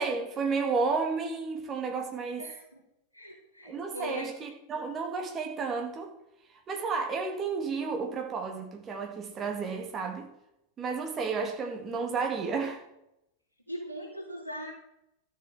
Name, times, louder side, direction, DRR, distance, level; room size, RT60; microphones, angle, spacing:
voice 1, 0.0-2.4 3.6-6.1 6.7-10.3 10.8-12.8, right 4 dB, 25° right, 3.3 m, -32 dB
voice 2, 2.4-2.8 3.1-4.3 13.7-14.7, equal, 85° left, 3.7 m, -40 dB
13.0 x 7.8 x 7.8 m
figure-of-eight pair, 90°, 0 cm